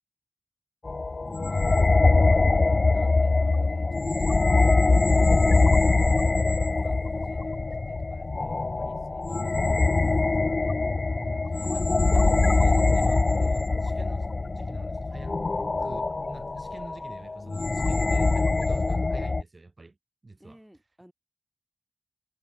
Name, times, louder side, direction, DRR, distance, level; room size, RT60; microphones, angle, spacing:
sound 1, 0.9-19.4, left 3 dB, 50° left, 0.7 m, -23 dB
voice 1, 1.2-2.0 11.2-15.4 15.8-20.0 20.2-20.6, right 3 dB, 45° right, 3.5 m, -47 dB
voice 2, 2.2-6.3 6.8-10.8 20.4-21.1, equal, 10° right, 6.9 m, -55 dB
wide cardioid pair, 65°, 0 cm